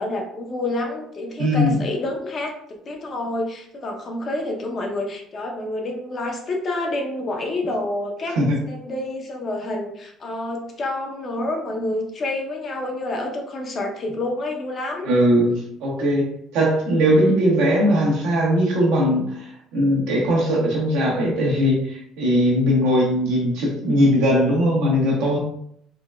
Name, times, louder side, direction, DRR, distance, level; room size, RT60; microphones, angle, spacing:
voice 1, 0.0-8.4 8.7-15.1, left 2 dB, 40° left, 2 dB, 0.7 m, -28 dB
voice 2, 1.4-1.8 8.3-8.6 15.0-15.5 15.8-16.3 16.5-25.4, equal, 80° right, -3 dB, 1.0 m, -19 dB
3.8 x 2.2 x 2.3 m, 0.70 s
cardioid pair, 100°, 0 cm